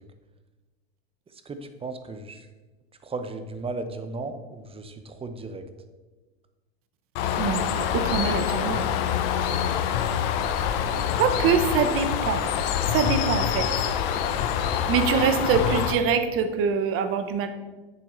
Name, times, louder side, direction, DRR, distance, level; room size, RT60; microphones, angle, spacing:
voice 1, 1.3-2.5 3.0-5.7, right 3 dB, 20° right, 8 dB, 0.8 m, -35 dB
Bird, 7.2-16.0, left 8 dB, 65° left, 0.9 m, -26 dB
voice 2, 7.4-8.9 11.1-12.4 12.9-13.7 14.9-17.5, right 6 dB, 45° right, 8 dB, 1.0 m, -24 dB
8.5 x 6.8 x 4.0 m, 1.2 s
hypercardioid pair, 105°, 31 cm